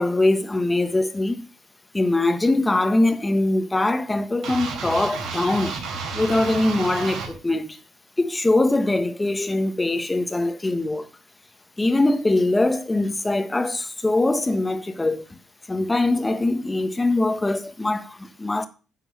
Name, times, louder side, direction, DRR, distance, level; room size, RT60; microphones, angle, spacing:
voice 1, 0.0-1.5 1.9-5.7 6.1-7.8 8.2-11.1 11.8-15.2 15.7-18.7, left 2 dB, 15° left, 1.4 m, -22 dB
sound 1, 4.4-7.3, right 4 dB, 70° right, 3.6 m, -31 dB
10.5 x 4.5 x 7.5 m
supercardioid pair, 80°, 0 cm